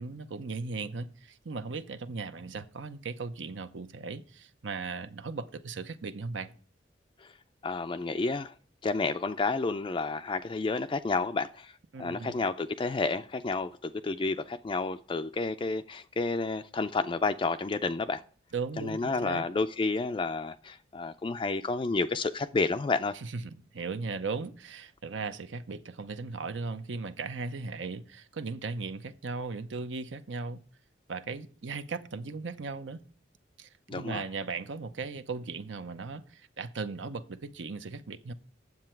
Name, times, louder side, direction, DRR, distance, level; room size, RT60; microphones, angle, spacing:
voice 1, 0.0-6.5 11.9-12.3 18.5-19.5 23.2-30.6 31.1-33.0 33.6-38.3, right 4 dB, 85° right, 0.7 m, -37 dB
voice 2, 7.6-8.5 8.8-18.2 18.8-23.1 33.9-34.2, left 3 dB, 25° left, 0.3 m, -30 dB
9.7 x 7.5 x 4.5 m
head